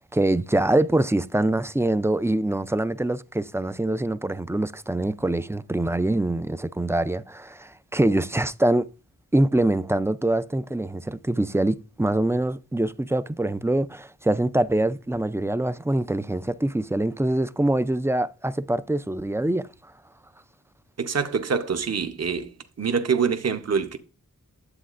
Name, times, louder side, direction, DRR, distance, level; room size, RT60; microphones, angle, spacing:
voice 1, 0.1-8.9 9.3-19.6, right 1 dB, 10° right, 0.3 m, -24 dB
voice 2, 21.0-22.5 22.8-24.0, right 6 dB, 45° right, 0.8 m, -25 dB
9.8 x 8.1 x 2.5 m
wide cardioid pair, 80°, 35 cm